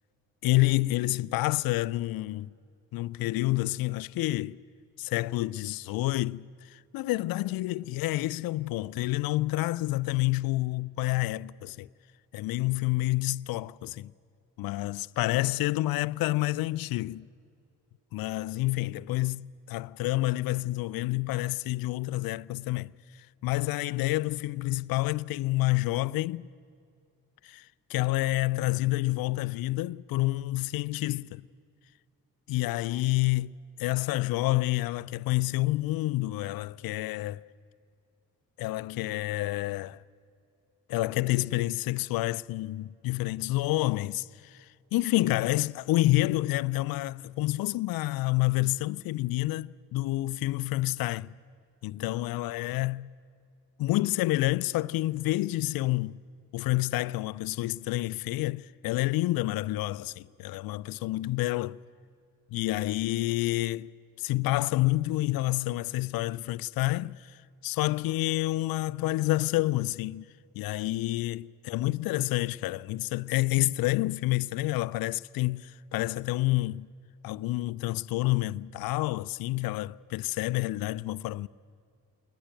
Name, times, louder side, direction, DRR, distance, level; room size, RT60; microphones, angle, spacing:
voice 1, 0.4-2.5 2.9-4.6 5.0-11.9 12.3-14.1 14.6-17.3 18.1-22.9 23.4-26.5 27.4-31.5 32.5-33.5 33.8-37.4 38.6-40.0 40.9-51.3 51.8-53.1 53.8-56.2 56.5-61.8 62.5-63.9 64.2-70.2 70.5-76.9 77.2-81.5, left 18 dB, 55° left, 0.5 m, -28 dB
21.0 x 19.5 x 9.0 m
hypercardioid pair, 40°, 44 cm